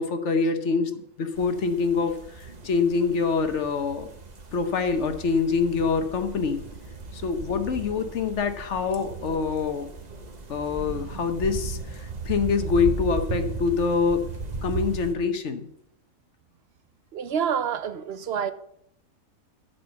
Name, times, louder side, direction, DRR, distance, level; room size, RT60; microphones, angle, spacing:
voice 1, 0.0-4.1 4.5-6.6 7.1-9.9 10.5-14.3 14.6-15.7, left 5 dB, 60° left, 1.1 m, -25 dB
sound 1, 1.3-15.1, right 3 dB, 35° right, 1.1 m, -36 dB
voice 2, 17.1-18.5, right 8 dB, 60° right, 0.7 m, -27 dB
8.8 x 6.8 x 7.0 m
omnidirectional pair, 1.5 m